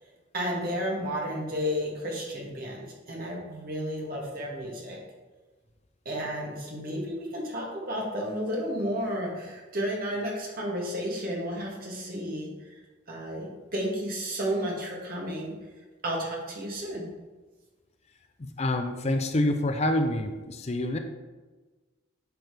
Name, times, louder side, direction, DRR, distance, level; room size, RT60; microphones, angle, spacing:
voice 1, 0.3-5.0 6.1-12.8 13.1-15.5 16.0-17.1, equal, 45° right, -2 dB, 2.0 m, -32 dB
voice 2, 18.4-21.0, left 1 dB, 30° left, 6 dB, 0.5 m, -27 dB
10.5 x 6.2 x 3.4 m, 1.3 s
head